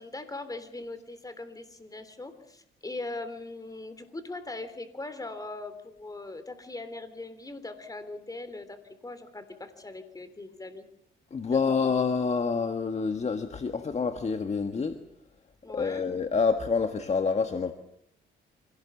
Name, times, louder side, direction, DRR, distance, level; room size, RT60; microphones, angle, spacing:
voice 1, 0.0-10.9 11.5-11.7 15.6-16.0, left 2 dB, 20° left, 10 dB, 3.5 m, -40 dB
voice 2, 11.3-15.0 15.7-17.7, left 5 dB, 35° left, 8 dB, 1.6 m, -27 dB
25.5 x 17.5 x 7.2 m, 0.76 s
cardioid pair, 90°, 20 cm